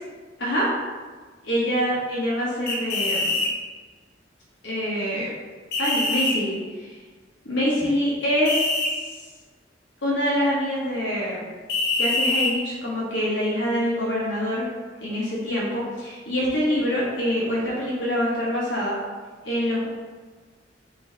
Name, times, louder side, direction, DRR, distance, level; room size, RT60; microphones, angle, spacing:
voice 1, 1.4-3.5 4.6-5.3 5.8-7.0 7.4-9.1 10.0-11.5 12.0-14.7 15.0-18.9 19.4-19.9, equal, 75° left, -6 dB, 1.1 m, -25 dB
sound 1, 2.7-3.5 5.7-6.4 8.5-8.9 11.7-12.5, left 2 dB, 60° left, 0.8 m, -24 dB
4.4 x 2.7 x 4.3 m, 1.4 s
head